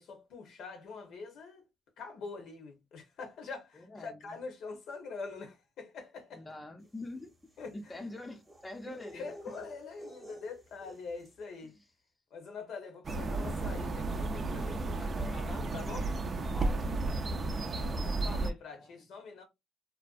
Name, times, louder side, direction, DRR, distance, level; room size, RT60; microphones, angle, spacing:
voice 1, 0.0-1.6 2.0-6.4 7.6-8.1 8.8-11.8 12.3-16.1 17.6-19.4, left 4 dB, 75° left, 0.8 m, -45 dB
voice 2, 3.7-4.4 6.3-7.3 7.7-9.3 11.6-11.8 14.9-15.5 16.5-17.0 18.7-18.9, left 2 dB, 20° left, 0.5 m, -45 dB
sound 1, 6.9-11.5, equal, 20° right, 0.8 m, -52 dB
sound 2, 13.0-18.5, right 2 dB, 45° right, 0.4 m, -33 dB
2.5 x 2.1 x 2.3 m
cardioid pair, 90°, 0 cm